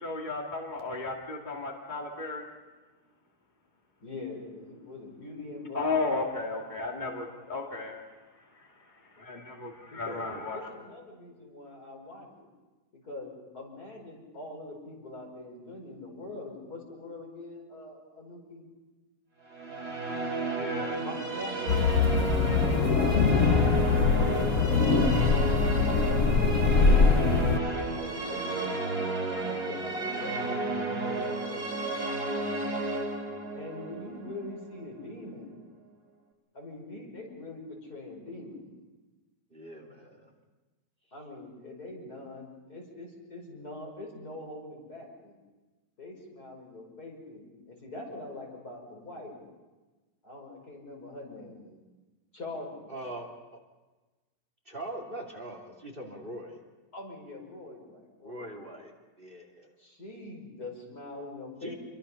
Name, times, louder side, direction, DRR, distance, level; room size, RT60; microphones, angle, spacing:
voice 1, 0.0-2.4 5.7-8.0 9.1-10.7 20.4-21.0, left 3 dB, 30° left, 0 dB, 2.5 m, -34 dB
voice 2, 4.0-5.9 9.9-12.5 13.0-18.7 20.9-21.6 22.4-23.2 24.0-26.2 27.3-28.8 29.1-31.7 33.5-35.5 36.5-38.6 41.1-45.4 46.0-49.4 50.2-51.7 52.3-53.1 56.9-58.7 59.8-61.8, left 2 dB, 75° left, 0 dB, 6.0 m, -43 dB
Musical instrument, 19.5-34.9, right 2 dB, 85° right, 3.7 m, -32 dB
sound 1, 21.7-27.6, left 4 dB, 55° left, 1.5 m, -23 dB
voice 3, 39.5-40.3 52.9-53.6 54.6-56.6 58.2-58.9 59.2-59.7 61.6-61.7, right 1 dB, 35° right, 2 dB, 3.0 m, -41 dB
27.5 x 23.0 x 5.7 m, 1.2 s
omnidirectional pair, 1.7 m